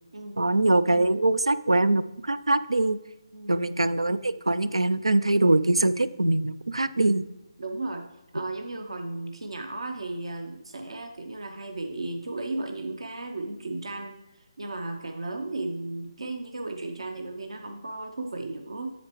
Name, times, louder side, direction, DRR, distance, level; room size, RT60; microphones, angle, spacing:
voice 1, 0.4-3.0 3.5-7.2, right 2 dB, 90° right, 15 dB, 0.4 m, -23 dB
voice 2, 3.3-3.7 7.1-7.2 7.6-8.0 8.3-18.9, right 2 dB, 75° right, 4 dB, 0.8 m, -35 dB
8.3 x 6.9 x 3.0 m, 0.94 s
figure-of-eight pair, 150°, 3 cm